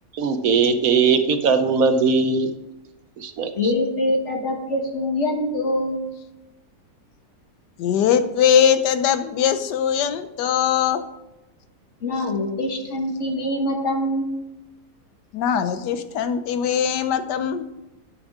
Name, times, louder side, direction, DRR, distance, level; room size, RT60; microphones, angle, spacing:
voice 1, 0.1-2.5 3.2-3.7, right 5 dB, 65° right, 9 dB, 1.0 m, -20 dB
voice 2, 3.6-6.1 12.0-14.4, left 1 dB, 45° left, 3 dB, 1.6 m, -24 dB
voice 3, 7.8-11.0 15.3-17.6, left 8 dB, 85° left, 11 dB, 1.3 m, -21 dB
9.1 x 7.1 x 4.8 m, 0.96 s
omnidirectional pair, 1.8 m